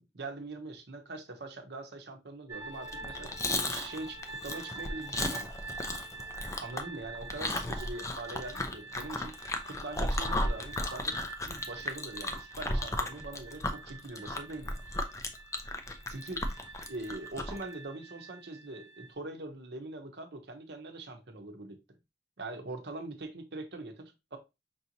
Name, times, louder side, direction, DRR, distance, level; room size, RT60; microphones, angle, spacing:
voice 1, 0.0-5.5 6.6-11.2 11.4-14.8 16.1-16.4 16.9-21.8 22.4-24.4, right 2 dB, 65° right, 0.8 m, -42 dB
sound 1, 2.5-19.1, right 4 dB, 20° right, 1.1 m, -47 dB
Chewing mastication, 2.8-17.6, left 2 dB, 15° left, 0.5 m, -35 dB
5.4 x 2.9 x 2.7 m
head